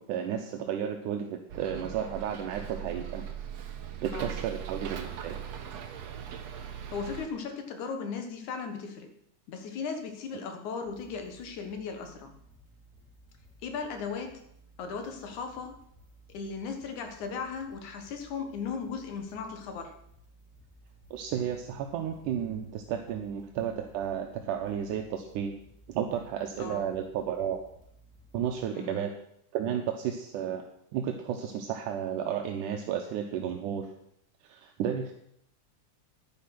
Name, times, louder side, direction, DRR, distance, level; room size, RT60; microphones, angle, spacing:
voice 1, 0.0-3.2 4.0-5.4 21.1-25.5 25.9-27.6 28.3-29.1 29.5-30.6 30.9-33.9 34.5-35.1, right 9 dB, 80° right, 3 dB, 2.4 m, -32 dB
Bus, 1.5-7.3, right 9 dB, 65° right, 2.0 m, -40 dB
voice 2, 6.9-9.2 9.5-12.4 13.6-14.4 14.8-15.8 16.3-19.9 26.6-26.9 28.7-29.0, left 5 dB, 70° left, 6 dB, 2.7 m, -37 dB
sound 1, 10.8-28.7, right 1 dB, ahead, 3.0 m, -58 dB
10.5 x 9.9 x 5.9 m, 0.71 s
omnidirectional pair, 3.6 m